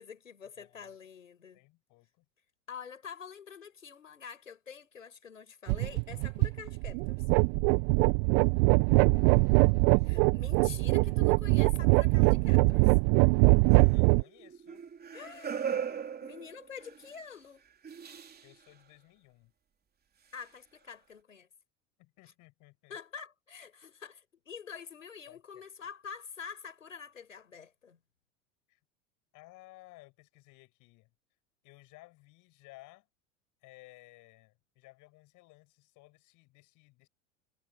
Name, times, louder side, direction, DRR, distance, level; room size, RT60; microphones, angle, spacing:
voice 1, 0.0-1.6 2.7-7.2 10.0-12.9 15.1-17.6 20.3-21.5 22.9-28.0, left 6 dB, 90° left, 5.7 m, -47 dB
voice 2, 0.6-1.0 1.5-2.3 9.1-10.3 13.7-14.9 18.4-19.5 22.0-23.0 25.3-25.4 28.7-28.8 29.3-31.1 31.6-33.1 33.6-37.1, left 21 dB, 55° left, 7.5 m, -57 dB
sound 1, 5.7-14.2, right 33 dB, 50° right, 0.6 m, -23 dB
sound 2, 13.7-17.1 17.8-18.5 20.4-20.5, right 7 dB, 25° right, 3.5 m, -39 dB
hypercardioid pair, 80°, 38 cm